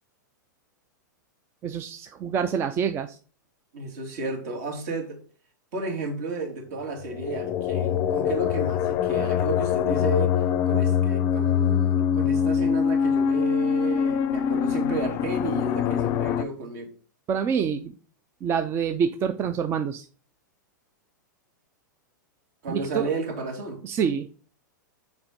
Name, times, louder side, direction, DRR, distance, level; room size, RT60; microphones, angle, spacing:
voice 1, 1.6-3.2 17.3-17.9 18.4-20.1 22.7-23.1 23.8-24.3, right 7 dB, 25° right, 0.4 m, -26 dB
voice 2, 3.7-5.2 5.7-16.9 22.6-23.8, right 3 dB, 60° right, 2.6 m, -32 dB
sound 1, 7.1-16.4, left 8 dB, 35° left, 0.5 m, -24 dB
5.9 x 4.4 x 5.1 m
hypercardioid pair, 135°, 11 cm